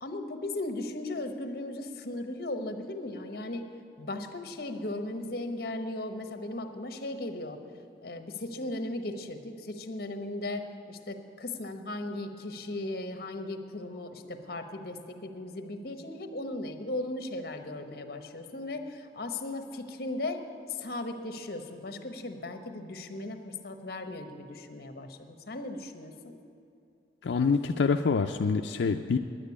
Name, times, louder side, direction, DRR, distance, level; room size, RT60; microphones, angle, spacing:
voice 1, 0.0-3.6 4.0-7.6 8.0-20.4 20.7-26.4, left 2 dB, 60° left, 7 dB, 1.0 m, -37 dB
voice 2, 27.2-29.2, left 5 dB, 90° left, 5 dB, 0.4 m, -26 dB
10.5 x 8.9 x 9.7 m, 2.6 s
head